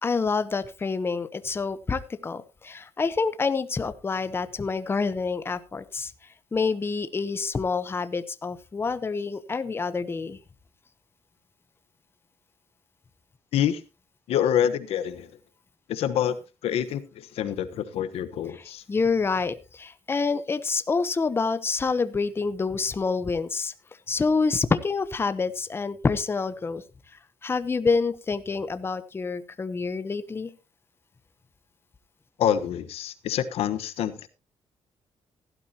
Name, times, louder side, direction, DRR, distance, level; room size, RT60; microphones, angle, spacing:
voice 1, 0.0-6.1 6.5-10.4 18.9-23.7 24.1-26.8 27.4-30.5, left 4 dB, 25° left, 0.8 m, -27 dB
voice 2, 14.3-15.3 15.9-16.4 16.6-18.8 32.4-34.3, left 9 dB, 90° left, 1.1 m, -26 dB
16.5 x 12.0 x 2.8 m
cardioid pair, 130°, 10 cm